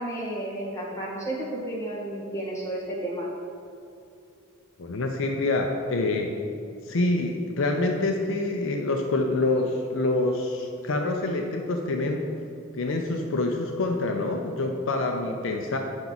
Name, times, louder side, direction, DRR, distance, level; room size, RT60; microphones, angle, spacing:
voice 1, 0.0-3.3, right 1 dB, 15° left, -6 dB, 1.7 m, -32 dB
voice 2, 4.8-6.3 6.8-12.3 12.7-15.8, left 2 dB, 65° left, 3 dB, 0.5 m, -26 dB
8.7 x 5.8 x 4.0 m, 2.5 s
head